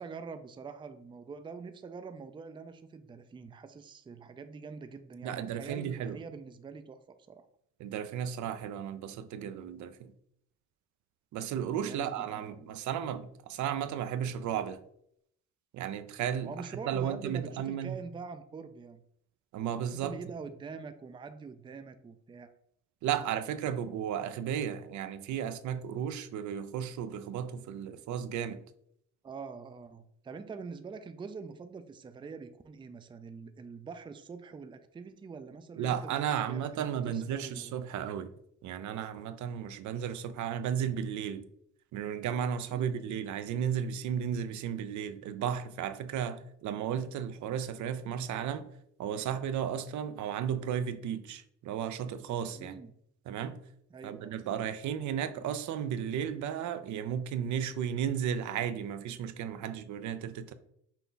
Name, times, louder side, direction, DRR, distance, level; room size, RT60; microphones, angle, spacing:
voice 1, 0.0-7.0 7.3-7.5 11.8-12.7 16.4-19.0 19.9-22.5 29.2-37.8 42.7-43.1 52.5-52.9 53.9-54.4, right 5 dB, 15° right, 0.4 m, -45 dB
voice 2, 5.2-6.2 7.8-10.1 11.3-14.8 15.7-18.0 19.5-20.1 23.0-28.6 35.8-38.3 38.6-41.5 41.9-48.7 49.0-52.8 53.3-53.6 54.0-60.5, right 9 dB, 75° right, 0.5 m, -34 dB
5.7 x 2.3 x 3.9 m
cardioid pair, 90°, 30 cm